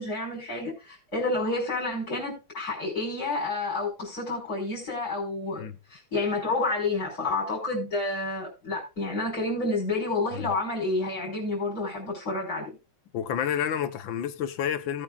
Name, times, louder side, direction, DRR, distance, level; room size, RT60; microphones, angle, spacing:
voice 1, 0.0-12.8, left 2 dB, 50° left, 5.5 m, -29 dB
voice 2, 13.1-15.0, left 9 dB, 85° left, 1.7 m, -29 dB
18.0 x 8.8 x 2.4 m
omnidirectional pair, 2.0 m